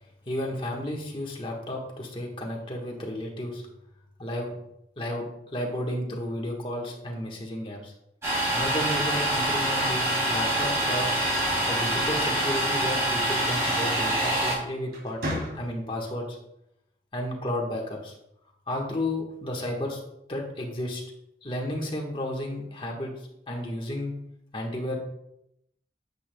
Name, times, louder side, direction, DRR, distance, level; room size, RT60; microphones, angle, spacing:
voice 1, 0.3-3.6 4.2-4.5 5.0-7.9 8.5-11.1 11.7-16.4 17.1-18.1 18.7-20.0 20.3-21.0 21.4-23.1 23.5-24.1 24.5-25.0, left 1 dB, 30° left, 0 dB, 1.4 m, -32 dB
Domestic sounds home sounds, 8.2-14.5, right 1 dB, 15° right, 2.8 m, -25 dB
sound 1, 11.3-12.8 14.2-14.5 14.9-16.0, equal, 65° right, 2.7 m, -36 dB
9.6 x 6.8 x 2.3 m, 0.81 s
head